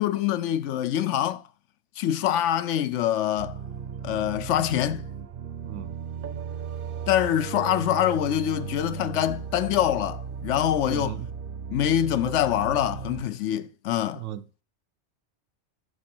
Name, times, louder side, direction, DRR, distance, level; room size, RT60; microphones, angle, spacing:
voice 1, 0.0-1.4 2.0-3.6 4.0-5.1 7.1-11.2 11.7-14.2, left 11 dB, 85° left, 0.9 m, -25 dB
sound 1, 3.4-13.2, right 7 dB, 55° right, 0.8 m, -36 dB
voice 2, 5.6-6.0 10.9-11.3 14.1-14.6, right 12 dB, 85° right, 1.0 m, -36 dB
6.8 x 6.1 x 4.4 m
omnidirectional pair, 1.2 m